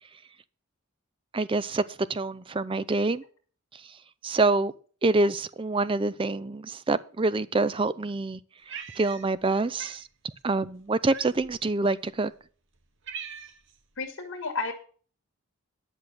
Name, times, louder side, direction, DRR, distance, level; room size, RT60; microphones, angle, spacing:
voice 1, 1.3-1.8 2.1-3.2 4.2-4.7 5.0-8.4 9.0-10.0 10.4-12.3, right 3 dB, 25° right, 0.4 m, -26 dB
Cat, 8.7-9.5 9.8-10.0 11.1-11.6 12.3-12.4 12.7-13.8, right 7 dB, 55° right, 0.9 m, -41 dB
voice 2, 14.0-14.7, left 4 dB, 60° left, 1.7 m, -32 dB
10.5 x 6.3 x 6.9 m
head